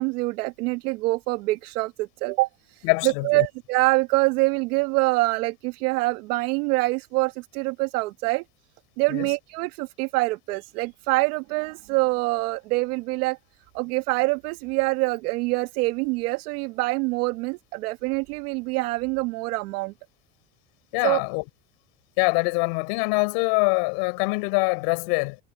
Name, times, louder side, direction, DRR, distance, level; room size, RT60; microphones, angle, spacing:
voice 1, 0.0-8.4 9.0-13.4 13.7-19.9 21.0-21.2, right 23 dB, 90° right, 1.6 m, -25 dB
voice 2, 2.8-3.5 9.1-9.3 20.9-21.4 22.2-25.4, left 34 dB, 65° left, 4.9 m, -24 dB
cardioid pair, 170°, 44 cm